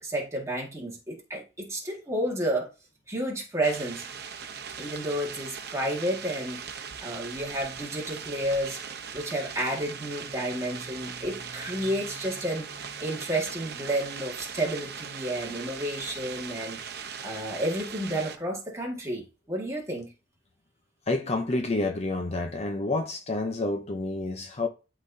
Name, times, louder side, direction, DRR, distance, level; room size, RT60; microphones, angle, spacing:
voice 1, 0.0-2.7 3.1-4.0 4.8-6.6 7.0-8.8 9.1-12.7 13.0-16.8 17.2-20.1, right 1 dB, 15° right, 1.8 m, -31 dB
sound 1, 3.6-18.4, right 6 dB, 55° right, 0.9 m, -39 dB
voice 2, 21.1-24.7, left 2 dB, 35° left, 0.6 m, -29 dB
11.5 x 4.0 x 2.7 m
head